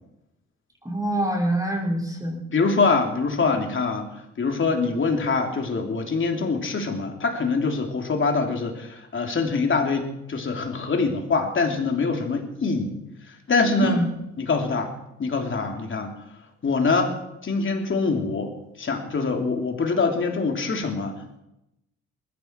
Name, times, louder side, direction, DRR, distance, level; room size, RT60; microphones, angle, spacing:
voice 1, 0.8-2.4 13.8-14.1, right 1 dB, 10° right, -2 dB, 5.8 m, -24 dB
voice 2, 2.5-4.1 4.4-12.9 13.5-14.0 14.4-14.9 15.2-16.1 16.6-17.1 17.4-18.5 18.8-21.1, left 4 dB, 40° left, 3 dB, 3.2 m, -24 dB
20.5 x 15.0 x 4.7 m, 0.86 s
cardioid pair, 90°, 30 cm